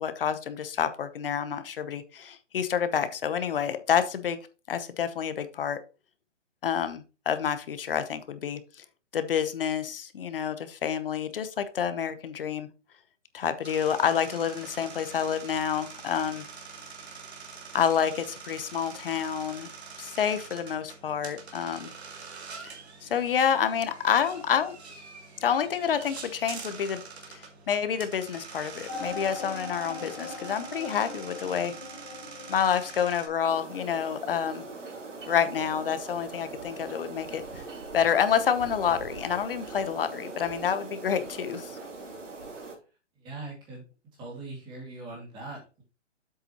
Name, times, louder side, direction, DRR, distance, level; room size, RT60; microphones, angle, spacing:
voice 1, 0.0-4.4 4.7-5.8 6.6-8.8 9.1-12.7 13.3-16.4 17.7-19.7 20.0-21.9 22.6-22.7 23.0-25.0 25.4-27.0 27.3-31.7 32.5-34.6 35.3-37.6 37.9-41.8, left 8 dB, 50° left, 11 dB, 1.0 m, -28 dB
sound 1, 13.6-33.3, right 5 dB, 60° right, 2.3 m, -45 dB
sound 2, 28.9-34.4, left 2 dB, 15° left, 3.3 m, -41 dB
sound 3, 33.5-42.8, right 3 dB, 85° right, 3.0 m, -41 dB
voice 2, 43.2-43.8 44.1-45.8, right 2 dB, 15° right, -1 dB, 2.3 m, -41 dB
7.8 x 6.9 x 3.0 m, 0.33 s
hypercardioid pair, 165°, 36 cm